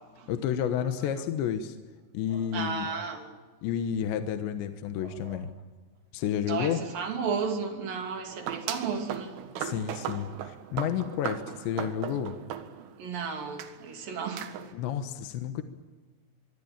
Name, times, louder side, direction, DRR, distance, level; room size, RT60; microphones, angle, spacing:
voice 1, 0.3-1.8 2.1-2.9 3.6-5.5 6.1-6.9 9.6-12.4 14.7-15.6, left 9 dB, 70° left, 3.2 m, -31 dB
voice 2, 2.5-3.3 5.3-5.4 6.5-9.3 13.0-14.5, right 5 dB, 50° right, 4.1 m, -33 dB
sound 1, 8.3-13.1 13.6-13.7 14.4-14.7, right 9 dB, 80° right, 4.2 m, -37 dB
24.5 x 24.0 x 8.9 m
omnidirectional pair, 5.8 m